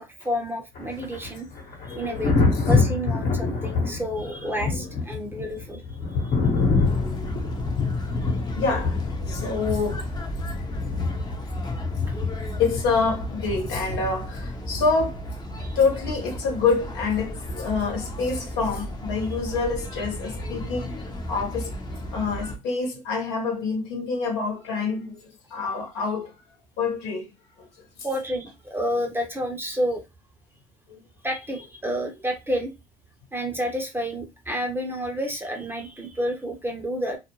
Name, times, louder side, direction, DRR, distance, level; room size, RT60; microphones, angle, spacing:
voice 1, 0.0-1.5 1.9-2.3 2.7-6.3 15.6-15.8 28.0-30.0 31.2-32.7 33.3-37.2, equal, 10° right, 0.8 m, -30 dB
Thunder, 0.7-14.4 16.0-16.3, left 4 dB, 50° left, 1.1 m, -26 dB
voice 2, 1.8-2.2 4.4-4.9 6.1-7.3 8.5-10.0 10.5-10.6 12.6-15.3 15.7-21.0 21.3-21.7 22.1-26.3 26.8-27.3 27.6-27.7 30.9-31.0, left 4 dB, 70° left, 1.1 m, -27 dB
sound 1, 6.8-22.6, equal, 20° left, 0.8 m, -34 dB
2.4 x 2.1 x 3.0 m
hypercardioid pair, 65°, 19 cm